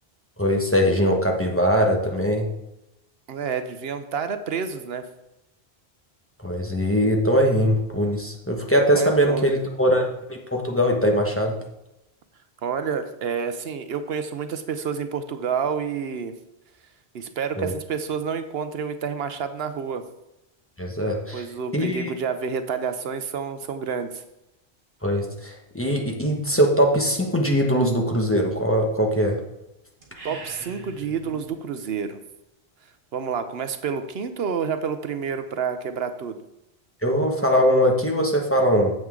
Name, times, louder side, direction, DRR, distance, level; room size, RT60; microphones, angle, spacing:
voice 1, 0.4-2.4 6.4-11.5 17.6-17.7 20.8-21.4 21.7-22.1 25.0-29.4 37.0-38.9, equal, 15° left, 0 dB, 1.1 m, -21 dB
voice 2, 3.3-5.1 8.9-9.5 12.6-16.3 17.1-20.0 21.3-24.2 30.2-32.2 33.1-36.4, right 6 dB, 75° right, 9 dB, 0.9 m, -29 dB
sound 1, 30.0-31.6, right 3 dB, 55° right, 1.9 m, -41 dB
9.1 x 7.4 x 3.7 m, 0.90 s
omnidirectional pair, 1.1 m